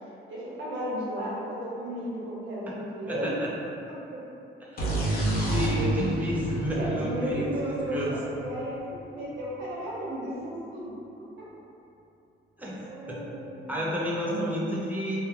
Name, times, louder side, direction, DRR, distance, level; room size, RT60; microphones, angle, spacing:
voice 1, 0.3-3.3 4.1-4.2 5.1-6.1 6.7-10.9 11.2-11.5 12.9-14.5, equal, 80° right, -7 dB, 0.9 m, -35 dB
voice 2, 3.1-3.5 4.6-4.8 5.3-7.5 7.9-8.2 12.6-13.2 13.7-15.2, equal, 10° right, -6 dB, 0.6 m, -31 dB
sound 1, 4.8-8.5, right 2 dB, 50° left, 0.7 m, -29 dB
2.3 x 2.3 x 2.9 m, 2.8 s
cardioid pair, 90°, 20 cm